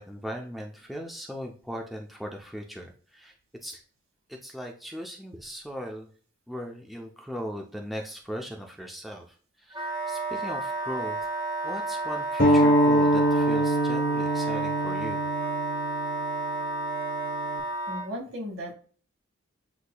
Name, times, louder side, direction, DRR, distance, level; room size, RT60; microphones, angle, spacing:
voice 1, 0.0-3.3 3.6-3.8 4.3-6.1 6.5-9.2 9.6-11.3 11.6-15.3, equal, ahead, 1 dB, 0.5 m, -38 dB
Wind instrument woodwind instrument, 9.7-18.1, right 2 dB, 20° right, 0.8 m, -31 dB
sound 1, 12.4-17.6, right 1 dB, 45° left, 0.9 m, -24 dB
voice 2, 17.9-18.7, equal, 85° right, -1 dB, 1.8 m, -35 dB
8.1 x 2.8 x 2.2 m, 0.42 s
head